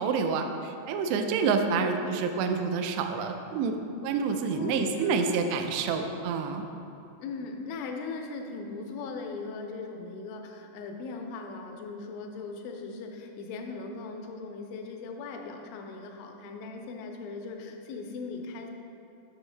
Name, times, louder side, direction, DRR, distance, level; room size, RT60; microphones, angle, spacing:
voice 1, 0.0-3.8 4.0-6.6, right 5 dB, 90° right, 5 dB, 2.4 m, -28 dB
voice 2, 4.3-5.5 7.2-18.7, left 4 dB, 85° left, 3 dB, 3.1 m, -39 dB
8.0 x 6.1 x 3.3 m, 2.8 s
omnidirectional pair, 5.3 m